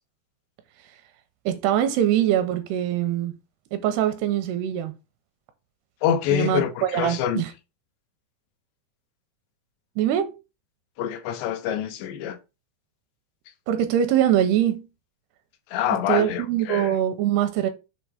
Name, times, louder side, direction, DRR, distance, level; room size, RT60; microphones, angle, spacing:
voice 1, 1.5-3.3 3.7-4.9 6.3-7.5 10.0-10.3 13.7-14.9 16.1-17.7, right 11 dB, 85° right, 2.5 m, -23 dB
voice 2, 6.0-7.4 11.0-12.4 15.7-16.9, left 10 dB, 85° left, 3.0 m, -26 dB
7.4 x 2.9 x 4.8 m
omnidirectional pair, 4.9 m